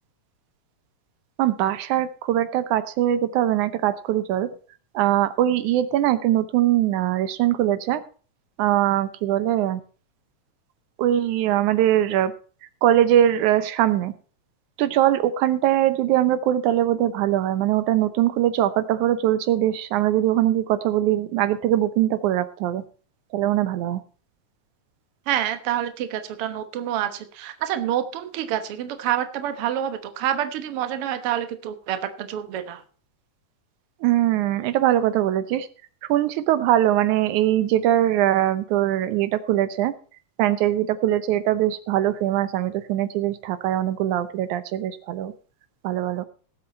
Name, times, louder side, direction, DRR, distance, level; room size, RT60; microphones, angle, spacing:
voice 1, 1.4-4.5 4.9-8.0 8.6-9.8 11.0-12.3 12.8-14.1 14.8-22.8 23.3-24.0 34.0-35.7 36.1-39.9 40.4-45.3 45.8-46.2, right 12 dB, 85° right, 13 dB, 2.2 m, -21 dB
voice 2, 25.3-32.8, right 11 dB, 60° right, 9 dB, 1.9 m, -27 dB
18.5 x 7.8 x 4.3 m, 0.39 s
omnidirectional pair, 3.4 m